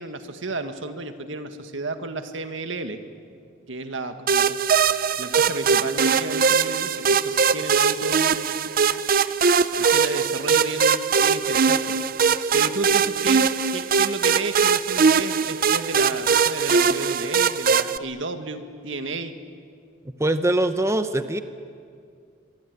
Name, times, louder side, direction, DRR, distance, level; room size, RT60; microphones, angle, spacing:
voice 1, 0.0-3.0 3.7-4.6 5.2-8.5 9.8-11.9 12.5-19.3, right 2 dB, 75° right, 8 dB, 1.9 m, -32 dB
sound 1, 4.3-18.0, right 6 dB, 50° right, 0.6 m, -21 dB
voice 2, 20.2-21.4, right 1 dB, 15° right, 9 dB, 0.8 m, -22 dB
25.0 x 23.0 x 9.6 m, 2.3 s
head